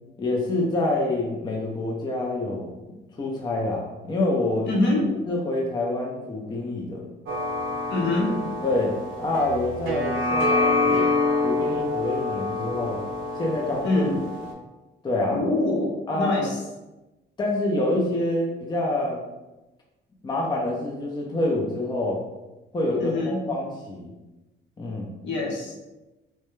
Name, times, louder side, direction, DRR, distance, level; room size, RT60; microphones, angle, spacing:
voice 1, 0.2-2.8 3.2-4.7 5.3-7.1 8.6-11.1 11.4-13.0 13.4-14.0 15.0-15.4 16.1-16.4 17.4-19.2 20.2-22.2 22.7-24.1 24.8-25.1, left 2 dB, 20° left, -2 dB, 0.5 m, -26 dB
voice 2, 4.6-5.2 7.9-8.3 13.8-14.1 15.3-16.6 23.0-23.5 25.2-25.8, left 2 dB, 70° left, -2 dB, 0.8 m, -24 dB
sound 1, 7.3-14.5, left 2 dB, 90° right, 0.5 m, -26 dB
2.2 x 2.1 x 3.0 m, 1.1 s
cardioid pair, 90°, 20 cm